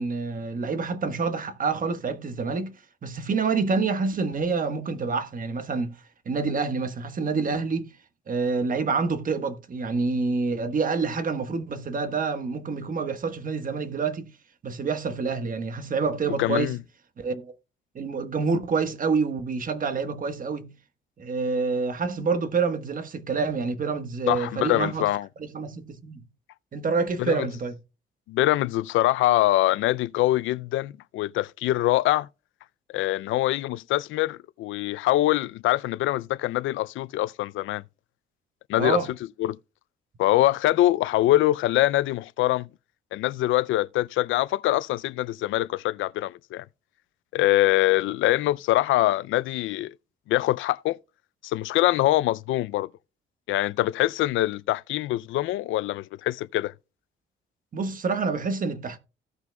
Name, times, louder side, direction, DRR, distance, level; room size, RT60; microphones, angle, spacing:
voice 1, 0.0-2.8 3.0-6.0 6.2-7.9 8.3-14.3 14.6-16.8 17.2-17.5 17.9-20.7 21.2-25.1 25.4-26.2 26.7-27.8 38.8-39.1 57.7-59.0, right 4 dB, 45° right, 1.3 m, -27 dB
voice 2, 16.4-16.8 24.3-25.3 27.2-27.5 28.3-32.3 32.9-37.8 38.7-39.0 39.4-39.6 40.2-42.7 43.1-46.6 47.3-49.9 50.3-51.0 51.4-52.9 53.5-56.7, left 16 dB, 80° left, 0.4 m, -24 dB
16.0 x 5.9 x 2.2 m
cardioid pair, 90°, 20 cm